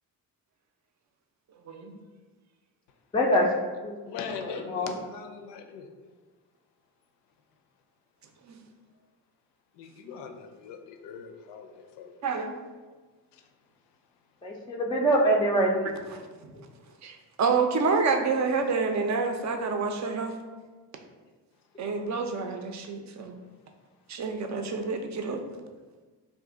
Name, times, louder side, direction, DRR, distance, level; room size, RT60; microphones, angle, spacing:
voice 1, 1.6-2.0 8.4-8.6 12.2-12.6 16.4-16.7 17.0-20.4 21.8-23.3 24.1-25.4, right 4 dB, 40° right, 5 dB, 0.5 m, -28 dB
voice 2, 3.1-4.0 4.4-4.9 14.4-15.9 16.6-16.7, equal, 10° left, -2 dB, 0.4 m, -25 dB
voice 3, 4.1-5.9 9.7-12.1 13.3-13.5, left 6 dB, 60° left, 5 dB, 0.6 m, -41 dB
2.6 x 2.5 x 3.6 m, 1.4 s
hypercardioid pair, 50°, 46 cm